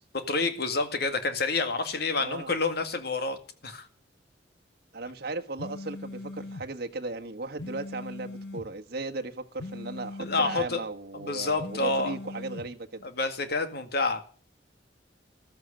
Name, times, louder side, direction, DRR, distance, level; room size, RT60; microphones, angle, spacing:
voice 1, 0.3-3.4 3.6-3.9 10.2-10.8 11.1-12.2 13.0-14.2, left 3 dB, 60° left, 2.0 m, -28 dB
voice 2, 2.2-2.5 4.9-13.1, right 3 dB, 60° right, 1.5 m, -36 dB
sound 1, 5.6-6.7 7.6-8.7 9.6-10.7 11.6-12.7, left 2 dB, 80° left, 1.4 m, -40 dB
14.0 x 13.0 x 6.6 m
head